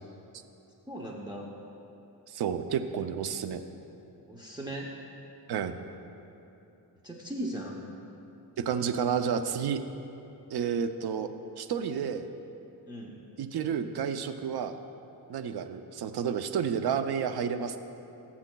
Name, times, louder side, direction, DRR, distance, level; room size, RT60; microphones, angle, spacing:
voice 1, 0.9-1.5 4.3-4.9 7.0-7.8 12.9-13.2, right 1 dB, 10° right, -4 dB, 0.7 m, -38 dB
voice 2, 2.3-3.6 5.5-5.7 8.6-9.8 10.5-11.3 11.6-12.3 13.4-14.8 15.3-17.8, right 7 dB, 70° right, 8 dB, 0.6 m, -30 dB
18.0 x 7.3 x 2.3 m, 2.9 s
wide cardioid pair, 150°, 39 cm